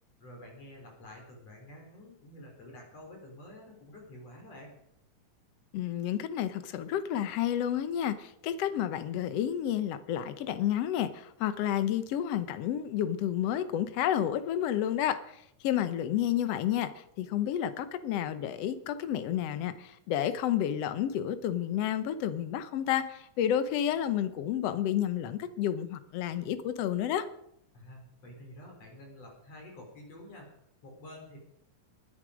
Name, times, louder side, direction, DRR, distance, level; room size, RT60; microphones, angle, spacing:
voice 1, 0.2-4.7 27.7-30.5 30.8-31.4, left 1 dB, 50° left, 0 dB, 5.0 m, -49 dB
voice 2, 5.7-27.3, left 10 dB, 65° left, 11 dB, 1.6 m, -30 dB
21.0 x 10.0 x 5.1 m, 0.74 s
omnidirectional pair, 3.9 m